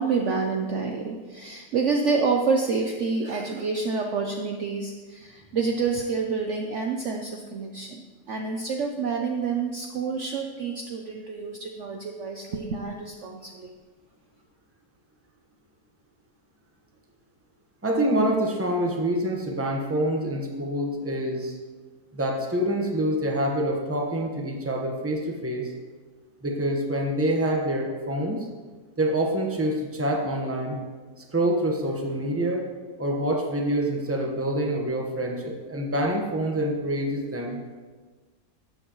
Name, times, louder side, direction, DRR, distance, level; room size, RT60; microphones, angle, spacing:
voice 1, 0.0-13.7, right 4 dB, 60° right, 2 dB, 0.9 m, -28 dB
voice 2, 17.8-21.5 22.1-25.7 26.4-28.4 29.0-30.8 31.3-32.6 33.0-37.6, right 1 dB, 10° right, 0 dB, 1.1 m, -26 dB
12.0 x 9.0 x 3.1 m, 1.4 s
omnidirectional pair, 1.7 m